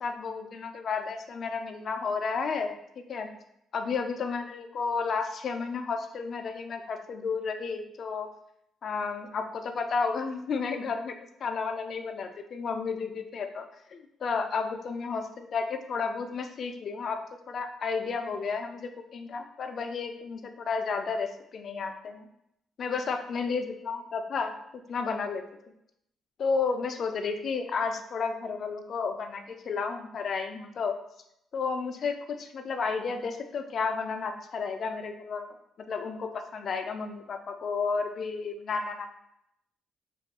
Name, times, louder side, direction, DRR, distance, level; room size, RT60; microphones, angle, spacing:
voice 1, 0.0-2.7 3.1-3.3 3.7-8.3 8.8-11.1 11.4-17.2 17.5-22.3 22.8-24.5 24.9-25.4 26.4-30.9 31.5-35.5 35.9-39.1, left 5 dB, 55° left, 6 dB, 0.4 m, -32 dB
2.7 x 2.4 x 3.6 m, 0.78 s
cardioid pair, 90°, 0 cm